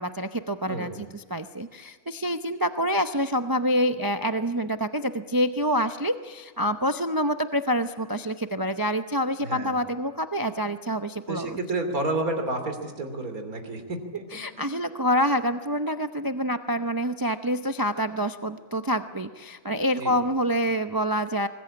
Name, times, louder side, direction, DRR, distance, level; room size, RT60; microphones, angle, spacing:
voice 1, 0.0-11.6 14.3-21.5, equal, 25° right, 8 dB, 0.5 m, -27 dB
voice 2, 0.7-1.0 9.4-9.8 11.3-14.2 14.6-14.8 20.0-20.2, right 2 dB, 75° right, 6 dB, 3.4 m, -30 dB
24.5 x 20.0 x 8.7 m, 1.5 s
omnidirectional pair, 1.6 m